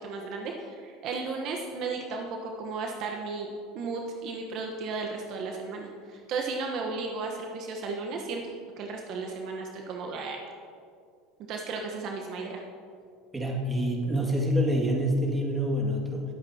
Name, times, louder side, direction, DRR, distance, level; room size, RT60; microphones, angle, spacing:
voice 1, 0.0-3.5 3.7-8.4 8.8-10.4 11.5-12.6, right 4 dB, 55° right, 2 dB, 1.2 m, -34 dB
voice 2, 13.3-16.2, equal, 15° right, -1 dB, 2.2 m, -26 dB
21.0 x 8.2 x 2.9 m, 2.3 s
supercardioid pair, 95°, 0 cm